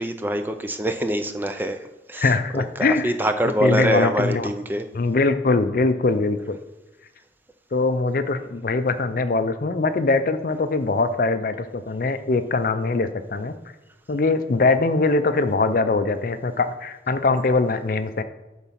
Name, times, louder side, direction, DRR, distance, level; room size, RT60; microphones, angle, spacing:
voice 1, 0.0-1.8 2.1-2.3 2.8-4.8, right 1 dB, 10° right, 7 dB, 0.4 m, -24 dB
voice 2, 2.2-3.1 3.6-4.5 4.9-6.6 7.7-13.5 14.1-18.2, left 3 dB, 50° left, 10 dB, 0.5 m, -22 dB
8.3 x 4.0 x 5.8 m, 1.1 s
head